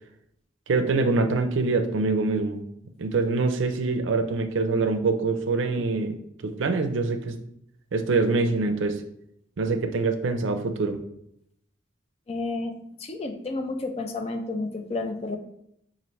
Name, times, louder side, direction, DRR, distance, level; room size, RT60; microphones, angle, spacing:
voice 1, 0.7-2.6 3.0-6.1 6.4-7.4 7.9-9.0 9.6-11.0, right 3 dB, 80° right, 7 dB, 0.5 m, -24 dB
voice 2, 12.3-12.7 13.0-15.4, left 3 dB, 30° left, 5 dB, 0.4 m, -31 dB
5.4 x 2.5 x 3.1 m, 0.74 s
head